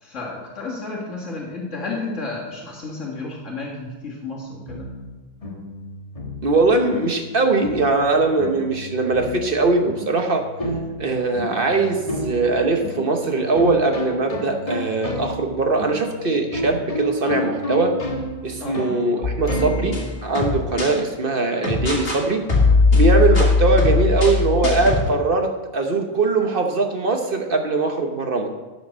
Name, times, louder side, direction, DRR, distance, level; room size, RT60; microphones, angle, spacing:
voice 1, 0.0-4.9 18.6-18.9, left 3 dB, 65° left, -4 dB, 2.1 m, -32 dB
sound 1, 4.7-20.3, left 1 dB, 30° left, 1.2 m, -31 dB
voice 2, 6.4-10.5 11.0-18.0 18.4-22.4 22.9-28.5, right 3 dB, 45° right, 4 dB, 1.1 m, -21 dB
sound 2, 19.2-20.9 21.6-22.2 22.5-25.1, left 3 dB, 45° left, 2.3 m, -19 dB
12.5 x 5.3 x 6.2 m, 1.2 s
omnidirectional pair, 1.4 m